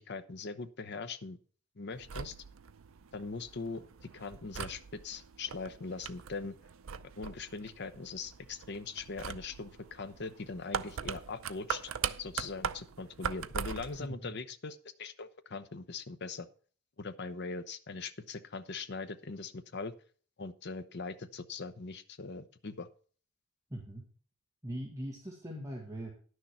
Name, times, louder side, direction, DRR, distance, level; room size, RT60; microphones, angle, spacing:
voice 1, 0.0-1.4 1.8-2.3 3.1-6.6 7.2-11.8 12.2-16.5 17.0-19.9 20.4-22.9, left 4 dB, 55° left, 11 dB, 0.8 m, -41 dB
sound 1, 1.9-14.1, right 7 dB, 75° right, 0.5 m, -41 dB
voice 2, 14.0-14.4 23.7-24.0 24.6-26.1, equal, 15° right, -2 dB, 1.8 m, -41 dB
11.0 x 6.6 x 5.6 m, 0.44 s
head